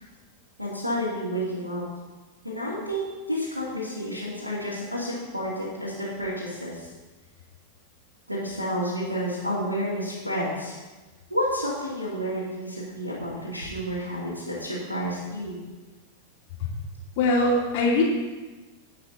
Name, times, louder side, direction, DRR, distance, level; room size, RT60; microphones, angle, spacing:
voice 1, 0.6-1.8 2.4-6.9 8.3-10.7 11.3-15.6, equal, 85° right, -8 dB, 2.6 m, -30 dB
voice 2, 17.2-18.0, left 2 dB, 50° left, -2 dB, 2.4 m, -21 dB
17.0 x 5.8 x 4.1 m, 1.2 s
figure-of-eight pair, 90°, 0 cm